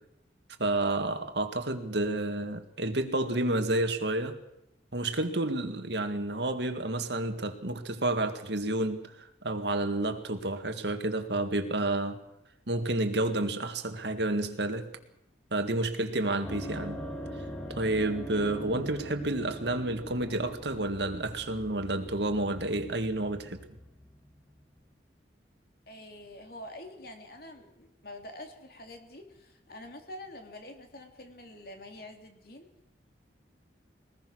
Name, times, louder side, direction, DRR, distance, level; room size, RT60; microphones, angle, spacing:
voice 1, 0.6-4.4 4.9-12.2 12.7-14.9 15.5-17.0 17.7-23.6, right 2 dB, 70° right, 2.1 m, -30 dB
sound 1, 16.4-24.8, equal, 5° left, 2.6 m, -42 dB
voice 2, 25.9-32.7, left 1 dB, 55° left, 3.0 m, -46 dB
22.5 x 19.5 x 6.4 m
head